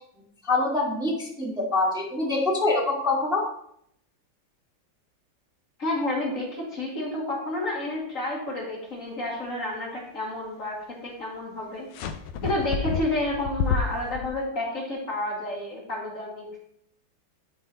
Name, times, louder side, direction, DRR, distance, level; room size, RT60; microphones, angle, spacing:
voice 1, 0.4-3.5, left 2 dB, ahead, -3 dB, 1.6 m, -25 dB
voice 2, 5.8-11.9 12.4-16.5, left 1 dB, 45° left, -2 dB, 1.8 m, -30 dB
sound 1, 11.9-14.3, left 6 dB, 85° left, 1.5 m, -29 dB
11.5 x 3.9 x 4.1 m, 0.71 s
omnidirectional pair, 2.1 m